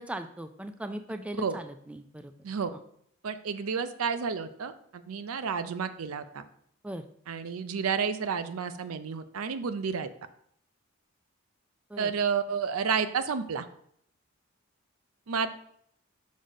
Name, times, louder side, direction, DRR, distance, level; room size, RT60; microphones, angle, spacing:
voice 1, 0.0-2.3 2.7-2.8 6.8-7.0 11.9-12.1, right 1 dB, 5° right, 9 dB, 0.3 m, -39 dB
voice 2, 2.4-2.8 3.2-6.4 7.3-10.1 12.0-13.6 15.3-15.5, right 6 dB, 85° right, 11 dB, 0.5 m, -31 dB
6.3 x 4.1 x 5.1 m, 0.68 s
head